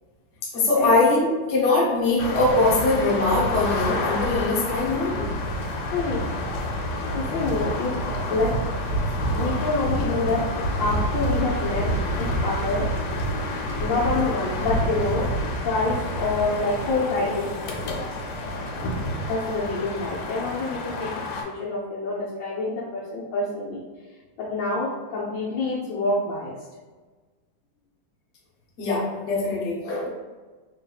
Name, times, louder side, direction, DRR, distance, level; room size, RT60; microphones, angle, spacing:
voice 1, 0.5-5.3 28.8-30.1, left 2 dB, 50° left, -5 dB, 0.8 m, -22 dB
sound 1, 2.2-21.4, equal, 85° left, 1.6 m, -28 dB
voice 2, 5.9-6.3 7.1-7.9 8.3-8.5 9.3-10.4 10.8-11.8 12.2-12.9 13.8-15.3 15.6-17.4 19.3-23.8 24.4-26.5, left 3 dB, 70° left, -5 dB, 1.1 m, -26 dB
4.0 x 3.4 x 2.3 m, 1.3 s
omnidirectional pair, 2.4 m